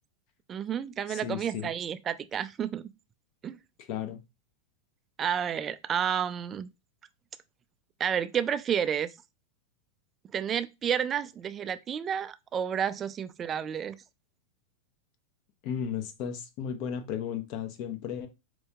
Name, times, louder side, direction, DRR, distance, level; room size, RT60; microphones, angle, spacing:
voice 1, 0.5-2.9 3.4-3.6 5.2-6.7 8.0-9.1 10.3-13.9, right 8 dB, 25° right, 0.3 m, -30 dB
voice 2, 1.1-1.7 3.8-4.2 15.6-18.3, left 8 dB, 50° left, 0.6 m, -34 dB
4.5 x 2.2 x 2.8 m
hypercardioid pair, 125°, 0 cm